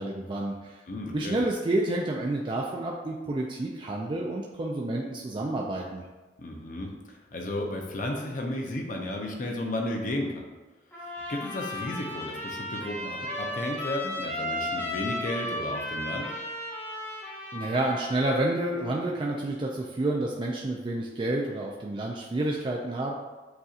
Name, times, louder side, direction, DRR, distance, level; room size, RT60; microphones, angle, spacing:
voice 1, 0.0-0.8 1.1-6.0 17.5-23.1, right 2 dB, 30° right, -1 dB, 0.4 m, -29 dB
voice 2, 0.9-1.4 6.4-10.4 11.3-16.3, left 1 dB, 50° left, 1 dB, 0.6 m, -33 dB
Trumpet, 10.9-18.5, left 1 dB, 10° left, 1.1 m, -35 dB
7.8 x 2.8 x 2.4 m, 1.2 s
head